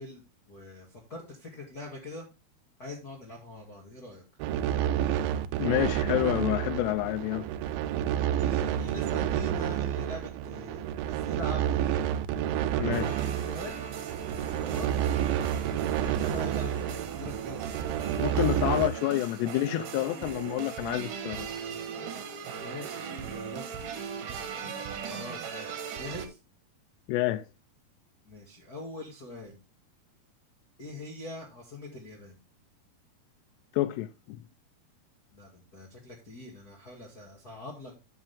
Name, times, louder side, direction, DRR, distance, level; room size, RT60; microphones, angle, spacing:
voice 1, 0.0-2.3 2.8-4.2 8.3-13.9 14.3-15.2 16.0-17.9 18.2-18.9 22.5-23.9 25.0-26.4 28.2-29.6 30.8-32.4 35.3-37.9, left 1 dB, 35° left, 1.8 m, -43 dB
sound 1, 4.4-18.9, right 10 dB, 85° right, 2.1 m, -30 dB
voice 2, 5.6-7.5 12.8-13.1 18.2-21.5 27.1-27.4 33.7-34.4, left 15 dB, 90° left, 2.8 m, -28 dB
sound 2, 12.9-26.3, right 7 dB, 60° right, 2.6 m, -38 dB
12.0 x 6.6 x 3.5 m
omnidirectional pair, 4.8 m